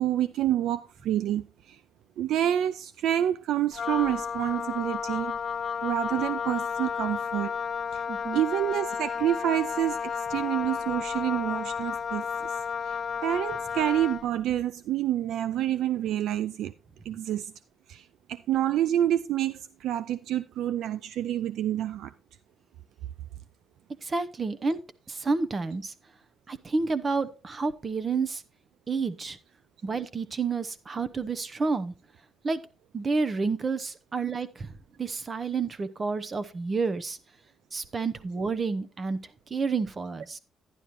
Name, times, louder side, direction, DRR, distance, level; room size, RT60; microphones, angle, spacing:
voice 1, 0.0-1.8 2.2-5.4 5.8-7.5 7.9-8.0 8.3-12.5 12.8-16.7 17.0-17.5 17.9-22.1, right 11 dB, 80° right, 0.4 m, -28 dB
Wind instrument woodwind instrument, 3.7-14.3, left 7 dB, 45° left, 0.6 m, -32 dB
voice 2, 8.1-8.4 24.0-24.8 25.1-25.9 26.5-28.4 28.9-29.4 29.8-31.9 32.4-32.6 32.9-34.7 35.0-37.2 37.7-39.2 39.5-40.4, right 4 dB, 35° right, 0.8 m, -29 dB
11.0 x 10.0 x 3.0 m
cardioid pair, 90°, 0 cm